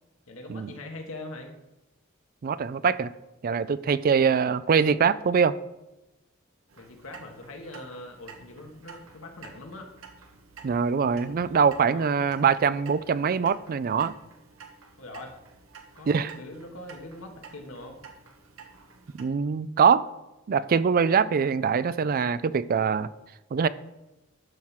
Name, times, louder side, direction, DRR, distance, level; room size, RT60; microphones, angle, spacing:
voice 1, 0.3-1.5 6.7-9.9 11.9-12.1 15.0-15.4 15.9-18.0, left 2 dB, 85° left, 2 dB, 1.4 m, -42 dB
voice 2, 2.4-3.1 3.4-5.5 10.6-14.1 16.1-16.3 19.2-20.0 20.5-23.1 23.5-23.7, right 6 dB, 45° right, 16 dB, 0.4 m, -23 dB
Clock, 6.7-19.2, right 5 dB, 85° right, 1.2 m, -50 dB
12.0 x 4.6 x 5.7 m, 0.98 s
head